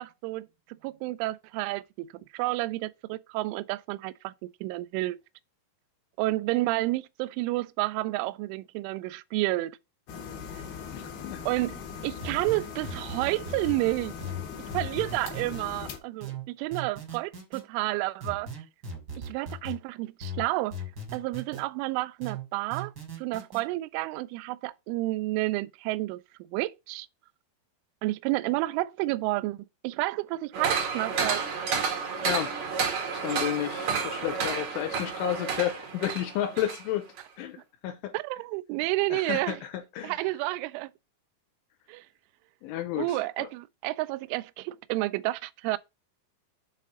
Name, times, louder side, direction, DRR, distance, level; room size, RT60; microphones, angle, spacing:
voice 1, 0.0-4.3 4.6-5.2 6.2-9.8 10.5-10.6 11.5-14.2 14.7-18.5 19.2-20.8 21.1-22.9 23.2-26.2 26.5-27.1 28.0-31.4 38.1-39.6 40.0-40.9 41.9-42.1 43.0-45.8, right 19 dB, 85° right, 2.9 m, -30 dB
sound 1, 10.1-16.0, left 6 dB, 65° left, 2.7 m, -40 dB
voice 2, 10.9-11.4 32.2-32.5 33.1-37.6 37.8-38.1 39.1-40.2 42.6-43.1 43.4-43.5, left 11 dB, 85° left, 3.2 m, -32 dB
sound 2, 12.2-13.8 14.2-15.6 16.2-17.6 18.2-19.8 20.2-21.6 22.2-23.6, right 1 dB, 40° right, 1.4 m, -38 dB
sound 3, 30.5-36.8 37.2-37.3, right 5 dB, 70° right, 1.7 m, -30 dB
7.5 x 4.2 x 5.0 m
omnidirectional pair, 5.9 m